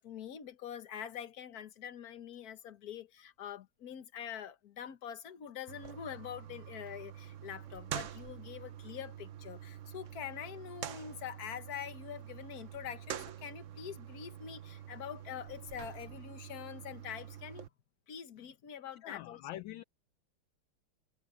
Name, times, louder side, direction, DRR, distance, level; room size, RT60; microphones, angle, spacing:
voice 1, 0.0-17.7 18.1-19.4, left 9 dB, 50° left, 1.5 m, -45 dB
sound 1, 5.7-17.7, right 10 dB, 60° right, 0.8 m, -46 dB
voice 2, 19.0-19.8, left 15 dB, 75° left, 1.3 m, -44 dB
omnidirectional pair, 2.3 m